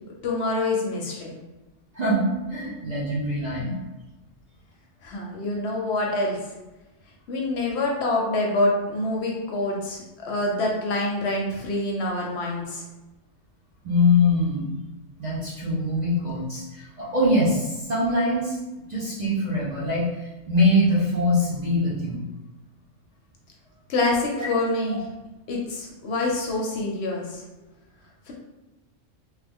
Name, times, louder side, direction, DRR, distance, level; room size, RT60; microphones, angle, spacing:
voice 1, 0.2-1.3 5.0-6.5 7.3-12.8 23.9-25.0 25.5-27.4 28.3-28.4, left 2 dB, 65° left, -1 dB, 0.8 m, -26 dB
voice 2, 1.9-3.8 13.8-14.7 15.2-18.6 18.9-22.2 24.4-24.5, left 1 dB, 45° right, -7 dB, 0.6 m, -23 dB
3.1 x 2.1 x 3.4 m, 1.1 s
omnidirectional pair, 1.3 m